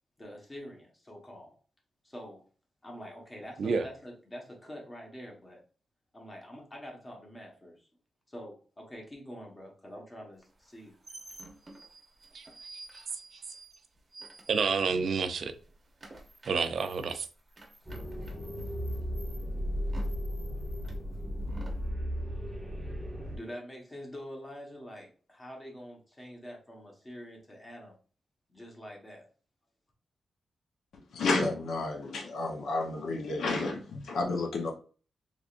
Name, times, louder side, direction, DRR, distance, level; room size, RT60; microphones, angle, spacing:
voice 1, 0.2-1.6 2.0-2.4 2.8-5.6 6.1-7.9 8.3-10.9 23.3-27.9 28.5-29.3, equal, 20° left, 1.1 m, -46 dB
sound 1, 10.6-15.2 15.5-21.9, right 2 dB, 25° right, 0.8 m, -51 dB
voice 2, 14.5-15.5 16.5-17.3, right 5 dB, 60° right, 0.4 m, -29 dB
sound 2, 17.8-23.4, equal, 5° right, 1.4 m, -35 dB
voice 3, 31.1-34.7, left 3 dB, 85° left, 0.7 m, -31 dB
3.6 x 3.3 x 2.4 m
wide cardioid pair, 155°, 0 cm